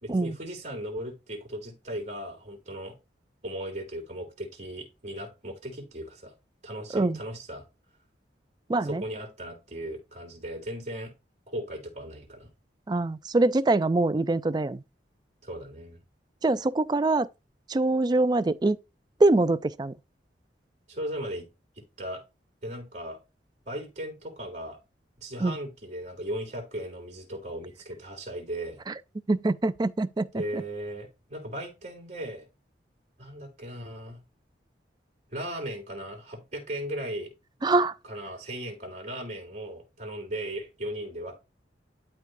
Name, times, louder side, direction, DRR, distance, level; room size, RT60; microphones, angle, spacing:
voice 1, 0.0-3.0 3.4-6.3 6.6-7.6 8.8-11.1 11.5-12.5 15.4-16.0 20.9-21.5 22.0-22.2 22.6-23.2 23.7-24.8 25.2-28.8 30.3-32.5 33.2-34.2 35.3-37.3 38.0-41.4, right 1 dB, 40° right, 3.3 m, -37 dB
voice 2, 8.7-9.0 12.9-14.8 16.4-17.3 17.7-18.8 19.2-19.9 25.4-25.5 29.3-30.6 37.6-37.9, right 2 dB, 25° right, 0.4 m, -24 dB
12.0 x 4.6 x 2.7 m
head